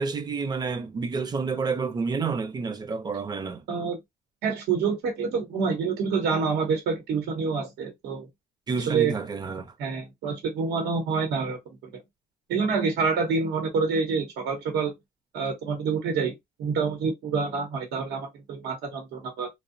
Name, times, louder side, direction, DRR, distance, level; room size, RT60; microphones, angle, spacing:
voice 1, 0.0-3.6 8.7-9.7, right 4 dB, 25° right, 0.5 m, -29 dB
voice 2, 3.7-4.0 4.4-8.3 8.9-9.1 9.8-11.6 12.5-14.9 15.3-16.3 16.6-19.5, right 5 dB, 75° right, 0.8 m, -27 dB
2.6 x 2.0 x 2.5 m
cardioid pair, 110°, 17 cm